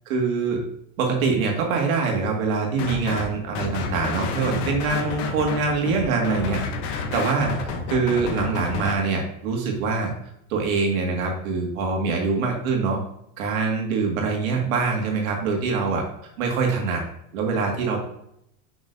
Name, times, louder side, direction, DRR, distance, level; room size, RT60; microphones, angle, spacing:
voice 1, 0.1-0.6 1.0-6.6 6.9-10.1 10.5-13.0 13.4-16.0 16.4-17.0 17.3-18.0, right 4 dB, 85° right, 1 dB, 2.0 m, -24 dB
sound 1, 2.8-3.3 3.5-8.9, left 4 dB, 45° left, 0.9 m, -30 dB
6.5 x 6.0 x 2.7 m, 0.77 s
supercardioid pair, 160°, 40 cm